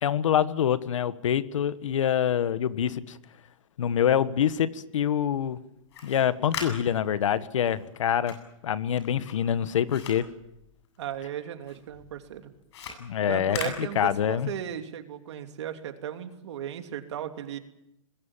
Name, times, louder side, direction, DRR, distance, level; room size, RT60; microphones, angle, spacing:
voice 1, 0.0-3.2 3.8-5.6 6.0-8.4 8.6-10.3 13.0-13.6 13.9-14.5, left 9 dB, 70° left, 14 dB, 1.5 m, -25 dB
sound 1, 5.8-11.3 11.6-14.6, left 6 dB, 55° left, 7.9 m, -41 dB
voice 2, 11.0-12.5 13.3-17.6, right 10 dB, 60° right, 6 dB, 3.0 m, -36 dB
27.0 x 21.5 x 7.3 m, 0.80 s
hypercardioid pair, 160°, 17 cm